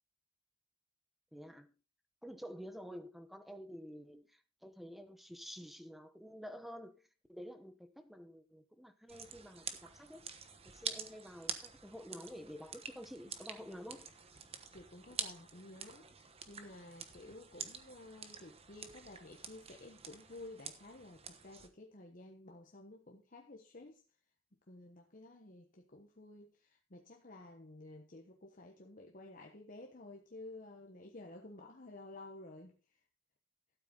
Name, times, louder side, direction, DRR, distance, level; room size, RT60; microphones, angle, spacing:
voice 1, 1.3-1.7 2.2-6.9 7.3-10.3 10.6-14.1, equal, ahead, 1.0 m, -50 dB
sound 1, 9.1-21.7, right 6 dB, 30° right, 1.1 m, -47 dB
voice 2, 14.7-16.1 16.5-24.0 24.7-32.7, left 2 dB, 45° left, 1.2 m, -53 dB
12.5 x 8.2 x 3.9 m
head